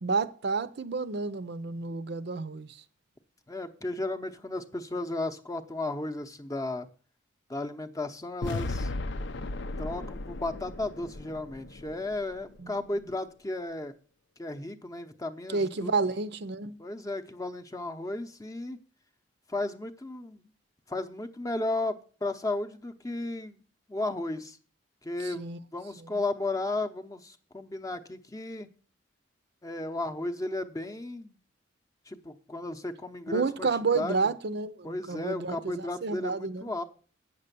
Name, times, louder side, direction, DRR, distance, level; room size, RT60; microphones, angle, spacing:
voice 1, 0.0-2.8 12.6-12.8 15.5-16.8 25.2-25.6 26.0-26.2 33.3-36.7, right 4 dB, 55° right, 0.6 m, -30 dB
voice 2, 3.5-6.9 7.5-8.9 9.8-13.9 14.4-15.9 16.8-18.8 19.5-20.5 20.9-23.6 23.9-24.6 25.0-28.7 29.6-31.4 32.1-33.7 33.9-34.3 34.8-36.8, left 2 dB, 15° left, 0.7 m, -34 dB
sound 1, 8.4-12.6, left 2 dB, 60° left, 0.6 m, -36 dB
9.0 x 6.8 x 6.7 m
head